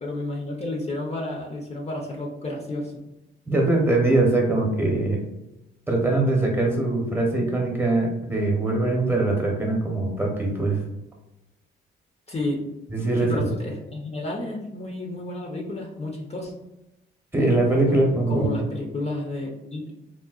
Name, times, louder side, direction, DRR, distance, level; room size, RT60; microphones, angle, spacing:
voice 1, 0.0-3.0 12.3-12.6 13.2-16.5 17.9-18.0 18.3-19.9, left 2 dB, 30° left, -1 dB, 0.6 m, -31 dB
voice 2, 3.5-5.2 5.9-10.8 12.9-13.5 17.3-18.6, right 2 dB, 10° right, -1 dB, 0.9 m, -22 dB
3.7 x 2.1 x 2.3 m, 0.92 s
cardioid pair, 80°, 21 cm